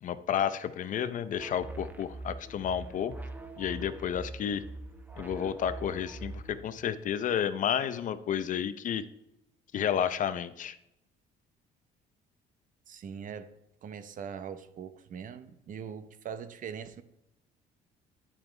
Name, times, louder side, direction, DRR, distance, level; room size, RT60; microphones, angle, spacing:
voice 1, 0.0-3.1 3.6-4.6 5.2-9.0 9.7-10.8, left 9 dB, 50° left, 13 dB, 0.6 m, -31 dB
sound 1, 1.4-6.6, right 2 dB, 10° right, 0.8 m, -43 dB
voice 2, 12.9-13.5 13.8-17.0, right 7 dB, 50° right, 11 dB, 0.8 m, -41 dB
10.0 x 8.8 x 3.3 m, 0.83 s
cardioid pair, 110°, 17 cm